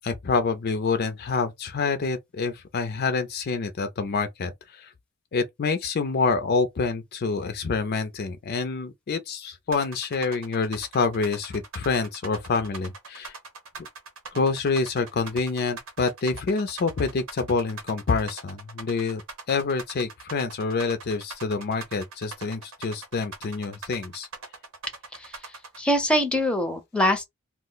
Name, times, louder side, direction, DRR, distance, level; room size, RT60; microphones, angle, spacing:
voice 1, 0.0-4.9 5.3-13.4 13.8-13.9 14.3-19.2 19.5-24.3, left 4 dB, 50° left, 0.4 m, -27 dB
sound 1, 9.7-25.8, right 4 dB, 80° right, 0.8 m, -41 dB
voice 2, 25.8-27.2, left 1 dB, 5° left, 0.6 m, -23 dB
2.4 x 2.0 x 3.8 m
head